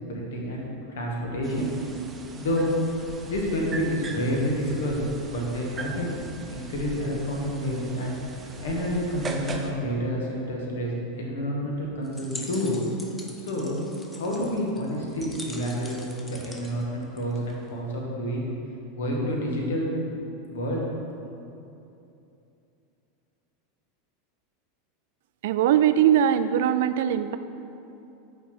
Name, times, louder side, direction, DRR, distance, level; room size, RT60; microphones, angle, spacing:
voice 1, 0.1-0.7 0.9-1.7 2.4-2.7 3.2-6.1 6.5-8.2 8.6-12.7 13.4-13.8 14.1-16.0 16.3-18.5 18.9-19.9 20.5-20.9, equal, 65° left, -2 dB, 1.5 m, -29 dB
sound 1, 1.4-9.7, right 4 dB, 20° right, 0.7 m, -39 dB
sound 2, 12.0-17.7, left 1 dB, 10° left, 0.8 m, -44 dB
voice 2, 25.4-27.4, right 10 dB, 60° right, 12 dB, 0.3 m, -21 dB
5.8 x 4.5 x 6.0 m, 2.8 s
figure-of-eight pair, 85°, 0 cm